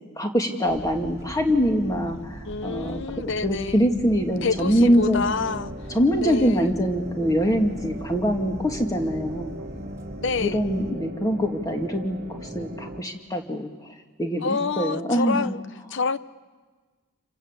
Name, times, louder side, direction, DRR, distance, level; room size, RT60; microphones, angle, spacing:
voice 1, 0.2-3.0 3.4-5.2 5.9-9.5 10.4-13.7 14.2-15.5, equal, 15° left, 2.2 m, -23 dB
sound 1, 0.7-10.9, right 1 dB, 15° right, 1.9 m, -41 dB
voice 2, 2.4-3.9 4.4-5.7 6.2-6.8 10.2-10.6 14.4-15.6 15.9-16.2, left 4 dB, 60° left, 0.8 m, -27 dB
sound 2, 4.3-13.0, equal, 45° right, 1.3 m, -38 dB
28.5 x 25.0 x 8.3 m
head